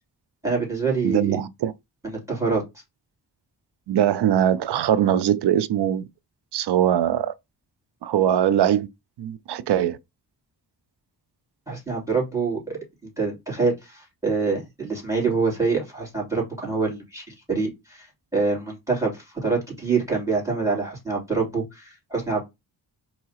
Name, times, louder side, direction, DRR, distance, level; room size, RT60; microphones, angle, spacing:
voice 1, 0.4-1.4 2.0-2.6 11.7-18.1 18.3-22.4, right 4 dB, 10° right, 3.0 m, -26 dB
voice 2, 1.0-1.7 3.9-6.1 6.5-7.3 8.0-8.9 9.2-10.0, right 10 dB, 75° right, 0.5 m, -21 dB
4.6 x 2.9 x 2.9 m
cardioid pair, 75°, 41 cm